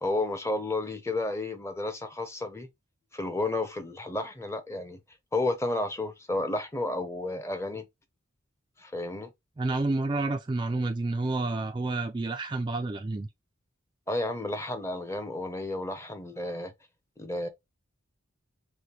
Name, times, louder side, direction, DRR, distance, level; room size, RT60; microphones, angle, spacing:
voice 1, 0.0-2.7 3.1-5.0 5.3-7.8 8.8-9.3 14.1-16.7 17.2-17.5, left 2 dB, 15° left, 0.7 m, -32 dB
voice 2, 9.6-13.3, right 2 dB, 25° right, 0.4 m, -29 dB
6.5 x 2.2 x 3.0 m
head